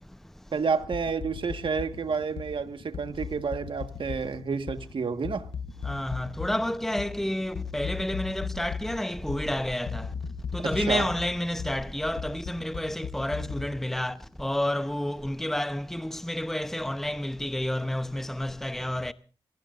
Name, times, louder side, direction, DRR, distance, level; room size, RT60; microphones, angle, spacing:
voice 1, 0.5-5.4 10.6-11.1, right 5 dB, 65° right, 1.6 m, -30 dB
sound 1, 0.8-13.7, left 6 dB, 80° left, 1.2 m, -38 dB
voice 2, 5.8-10.1 10.5-14.1 14.4-19.1, left 1 dB, 5° left, 0.9 m, -30 dB
27.0 x 18.5 x 2.6 m
cardioid pair, 55°, 9 cm